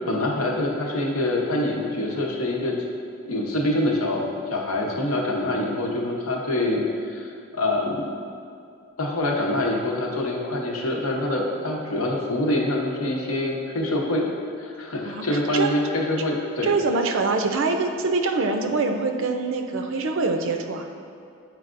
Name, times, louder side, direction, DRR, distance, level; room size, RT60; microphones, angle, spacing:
voice 1, 0.0-2.8 3.2-8.1 9.0-14.2 14.6-16.7, left 1 dB, 90° left, -1 dB, 0.8 m, -25 dB
voice 2, 16.6-20.9, right 3 dB, 65° right, 5 dB, 0.4 m, -24 dB
8.2 x 4.6 x 2.5 m, 2.4 s
head